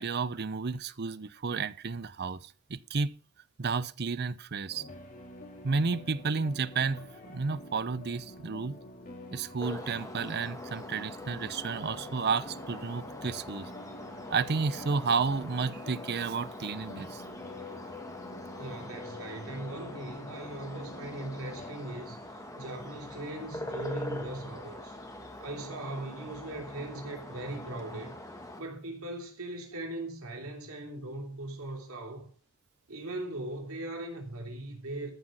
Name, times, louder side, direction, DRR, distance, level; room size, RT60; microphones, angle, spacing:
voice 1, 0.0-3.1 3.6-4.9 5.6-8.8 9.3-13.7 14.3-17.2, right 4 dB, 45° right, 0.6 m, -32 dB
sound 1, 4.7-21.7, left 2 dB, 40° left, 2.5 m, -47 dB
sound 2, 9.6-28.6, left 1 dB, 15° left, 1.6 m, -44 dB
voice 2, 18.6-25.0 25.4-28.1 28.6-32.3 32.9-35.1, right 1 dB, 70° right, 3.0 m, -39 dB
14.0 x 5.7 x 6.4 m
head